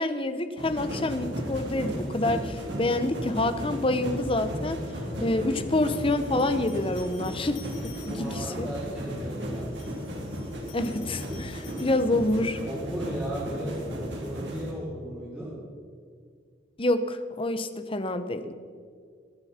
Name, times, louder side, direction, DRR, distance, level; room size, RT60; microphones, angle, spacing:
voice 1, 0.0-4.8 5.2-8.7 10.7-12.6 16.8-18.5, left 2 dB, 30° left, 10 dB, 0.9 m, -27 dB
sound 1, 0.6-14.7, equal, 65° right, 3.3 m, -35 dB
voice 2, 5.1-5.5 8.1-9.7 12.6-15.5, right 1 dB, 5° right, -10 dB, 3.7 m, -36 dB
sound 2, 5.8-8.6 9.6-12.6, left 7 dB, 85° left, 2.5 m, -52 dB
24.0 x 10.5 x 4.4 m, 2.1 s
head